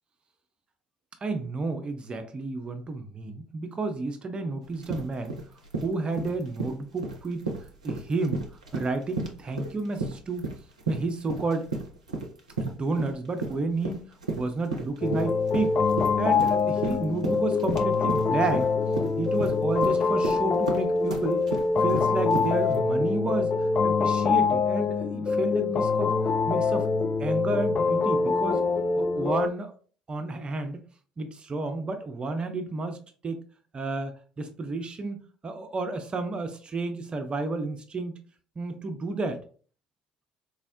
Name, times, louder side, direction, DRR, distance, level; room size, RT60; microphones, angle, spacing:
voice 1, 1.2-5.3 5.8-7.5 7.8-8.4 8.7-10.5 10.9-11.7 12.6-15.8 16.2-18.7 19.2-21.5 21.8-26.1 26.5-26.9 27.2-28.6 28.9-29.7 30.1-30.8 31.2-33.0 33.2-33.4 33.7-38.2 38.6-39.4, right 3 dB, 30° right, 7 dB, 0.5 m, -31 dB
sound 1, 4.6-22.8, right 3 dB, 85° right, 0.4 m, -34 dB
sound 2, 15.0-29.5, left 4 dB, 40° left, 0.4 m, -25 dB
4.2 x 2.0 x 2.6 m, 0.41 s
figure-of-eight pair, 55°, 4 cm